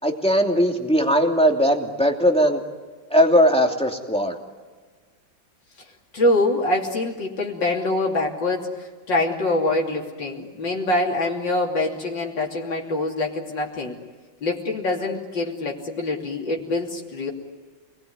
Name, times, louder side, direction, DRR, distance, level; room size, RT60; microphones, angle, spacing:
voice 1, 0.0-2.6 3.1-4.4, equal, 5° left, 2 dB, 2.8 m, -19 dB
voice 2, 6.1-14.0 14.4-17.3, left 2 dB, 65° left, -1 dB, 3.7 m, -24 dB
29.5 x 20.5 x 9.6 m, 1.4 s
omnidirectional pair, 2.1 m